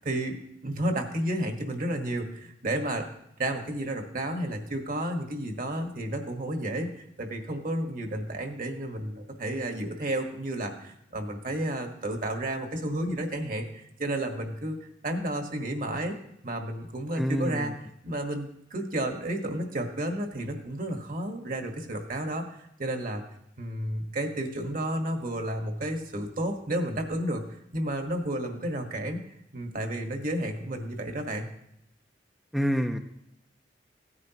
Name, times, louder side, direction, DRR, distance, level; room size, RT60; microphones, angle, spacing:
voice 1, 0.0-3.1 3.4-14.8 15.0-16.2 16.4-23.2 23.6-27.4 27.7-29.2 29.5-31.5, right 1 dB, 50° right, 4 dB, 1.4 m, -32 dB
voice 2, 17.2-17.6 32.5-33.0, equal, ahead, 4 dB, 0.5 m, -27 dB
16.0 x 9.6 x 2.9 m, 0.77 s
head